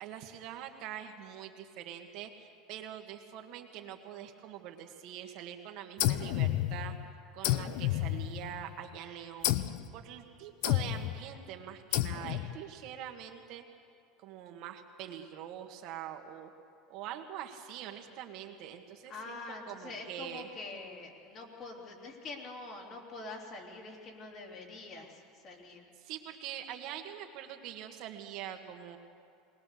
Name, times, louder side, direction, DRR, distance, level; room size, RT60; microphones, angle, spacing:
voice 1, 0.0-6.9 7.3-9.7 9.9-13.6 14.2-16.5 16.9-19.4 19.7-20.5 26.0-29.0, right 10 dB, 55° right, 4 dB, 1.6 m, -44 dB
sound 1, 6.0-7.0 7.4-8.7 9.4-9.9 10.6-11.2 11.9-12.6, left 14 dB, 70° left, 0.7 m, -31 dB
voice 2, 19.1-25.9, left 3 dB, 40° left, 0 dB, 3.3 m, -45 dB
21.0 x 19.5 x 6.7 m, 2.3 s
supercardioid pair, 140°, 0 cm